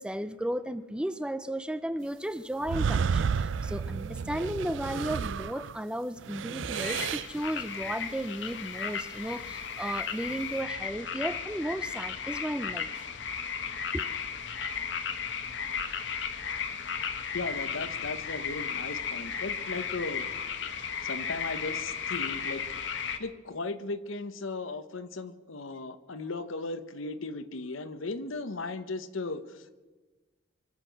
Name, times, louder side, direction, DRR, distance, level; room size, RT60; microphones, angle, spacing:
voice 1, 0.0-13.1 13.9-14.0, right 1 dB, 5° right, 0.4 m, -34 dB
sound 1, 2.6-5.8 6.2-7.4, right 6 dB, 65° right, 0.4 m, -31 dB
sound 2, 6.7-23.2, left 6 dB, 60° left, 1.1 m, -35 dB
voice 2, 17.3-20.3 21.0-22.6 23.2-29.8, left 3 dB, 85° left, 1.0 m, -36 dB
24.5 x 8.3 x 6.8 m
head